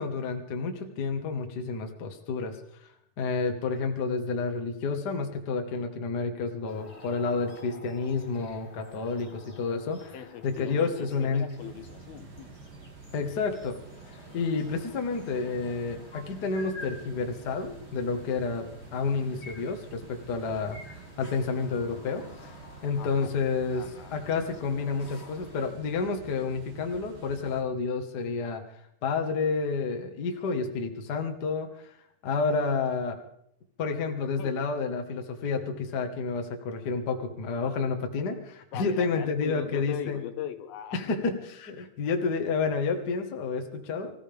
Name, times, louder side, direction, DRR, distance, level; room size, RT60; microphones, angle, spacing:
voice 1, 0.0-2.6 3.2-10.1 10.4-11.5 13.1-13.8 14.3-20.8 21.2-22.5 22.8-23.8 24.1-28.6 29.0-31.9 32.2-33.2 33.8-40.2 40.9-44.1, left 4 dB, 50° left, 4 dB, 1.2 m, -30 dB
sound 1, 6.7-25.7, left 2 dB, 20° left, 1.9 m, -50 dB
voice 2, 10.1-12.5 23.0-23.3 23.7-24.2 24.4-24.5 34.4-34.6 38.7-41.1 41.8-41.9, left 10 dB, 80° left, 8 dB, 3.0 m, -40 dB
sound 2, 11.6-27.6, right 4 dB, 65° right, 3.9 m, -48 dB
25.5 x 15.5 x 3.5 m, 0.72 s
omnidirectional pair, 4.3 m